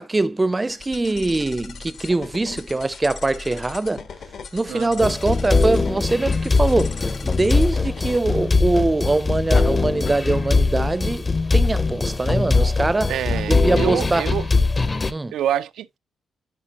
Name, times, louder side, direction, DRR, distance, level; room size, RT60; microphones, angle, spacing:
voice 1, 0.0-4.0 4.5-7.0 7.2-11.3 11.5-13.1 13.5-14.2 15.1-15.3, right 2 dB, 20° right, 0.5 m, -22 dB
sound 1, 0.7-8.2, left 5 dB, 65° left, 1.3 m, -39 dB
voice 2, 4.7-5.1 13.1-14.5 15.3-16.0, right 11 dB, 85° right, 0.3 m, -26 dB
sound 2, 5.0-15.1, left 3 dB, 25° left, 0.7 m, -21 dB
sound 3, 7.4-13.4, left 6 dB, 85° left, 4.5 m, -45 dB
10.0 x 4.9 x 2.9 m
cardioid pair, 115°, 0 cm